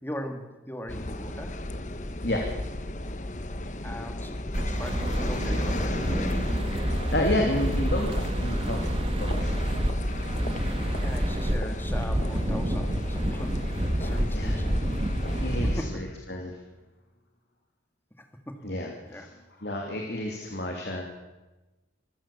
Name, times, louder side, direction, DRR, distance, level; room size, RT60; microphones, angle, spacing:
voice 1, 0.0-1.6 3.8-5.9 11.0-14.8 15.6-16.0 18.2-18.7 19.0-19.3, equal, 10° left, 5 dB, 2.1 m, -39 dB
sound 1, 0.9-15.9, left 1 dB, 40° left, 1.1 m, -35 dB
sound 2, 4.5-15.8, equal, 30° right, 1.4 m, -28 dB
voice 2, 7.1-9.4 14.3-14.6 15.4-16.5 18.6-19.3 19.6-21.0, left 1 dB, 60° left, 1 dB, 2.9 m, -30 dB
25.5 x 15.5 x 7.2 m, 1.1 s
head